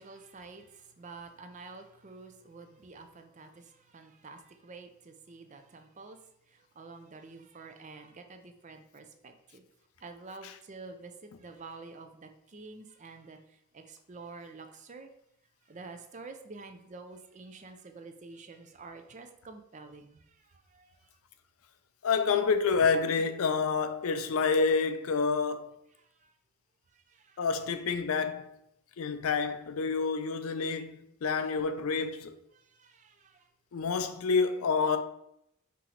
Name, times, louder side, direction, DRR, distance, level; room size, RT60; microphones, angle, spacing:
voice 1, 0.0-6.2 6.8-9.6 10.0-11.1 11.4-13.4 13.7-15.1 15.7-20.2 20.7-20.9 27.1-27.4 32.7-33.4, right 3 dB, 35° right, 0.5 m, -48 dB
voice 2, 22.0-25.8 27.4-28.6 29.0-32.3 33.7-35.0, left 5 dB, 80° left, 0.4 m, -28 dB
4.7 x 2.9 x 3.8 m
head